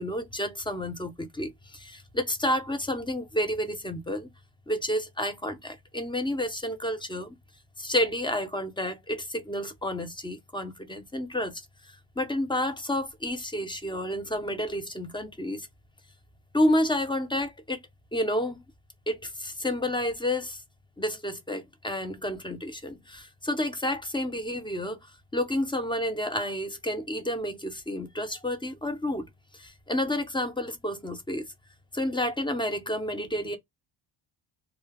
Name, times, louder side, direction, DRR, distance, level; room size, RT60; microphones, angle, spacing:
voice 1, 0.0-4.3 4.7-7.3 7.8-15.7 16.5-17.8 18.1-18.6 19.1-20.6 21.0-25.0 25.3-29.3 29.5-31.5 31.9-33.6, left 1 dB, 10° left, 0.6 m, -30 dB
2.3 x 2.2 x 3.4 m
cardioid pair, 100°, 44 cm